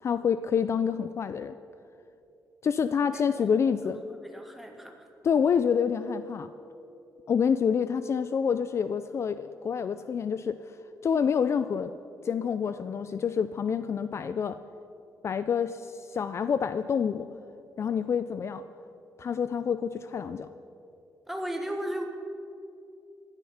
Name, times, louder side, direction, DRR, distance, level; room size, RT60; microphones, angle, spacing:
voice 1, 0.0-1.6 2.6-4.0 5.2-6.5 7.3-10.8 11.0-11.9 12.2-14.6 15.2-17.3 17.8-18.6 19.2-20.5, left 7 dB, 40° left, 12 dB, 0.4 m, -27 dB
voice 2, 3.1-5.1 21.3-22.0, equal, 5° right, 3 dB, 1.5 m, -37 dB
15.5 x 11.5 x 5.7 m, 2.7 s
cardioid pair, 145°, 7 cm